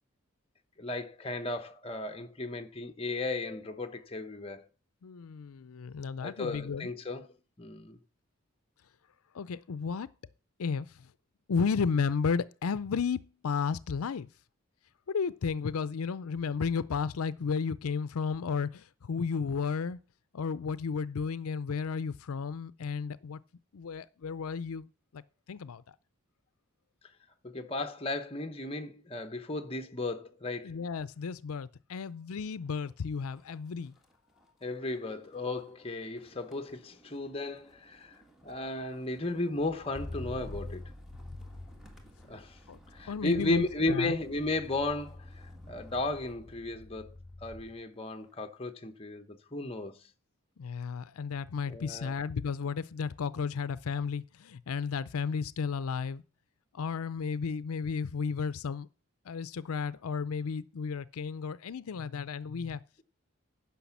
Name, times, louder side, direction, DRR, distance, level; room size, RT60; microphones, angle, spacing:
voice 1, 0.8-4.7 6.2-7.3 7.6-8.0 27.4-30.8 34.6-38.1 38.4-40.8 42.3-42.6 42.9-47.2 47.4-50.0 51.7-52.2, left 2 dB, 25° left, 0.9 m, -35 dB
voice 2, 5.0-6.9 9.3-10.1 10.6-11.1 11.5-14.3 15.1-20.0 20.3-23.4 23.7-24.9 25.1-25.2 25.5-25.8 30.6-33.9 42.7-42.8 43.1-44.1 50.6-56.2 56.7-58.9 59.3-62.8, left 5 dB, 80° left, 0.5 m, -33 dB
Motor vehicle (road), 32.7-33.0 33.4-47.8 48.2-48.6, left 1 dB, ahead, 1.6 m, -48 dB
10.0 x 5.9 x 7.1 m
head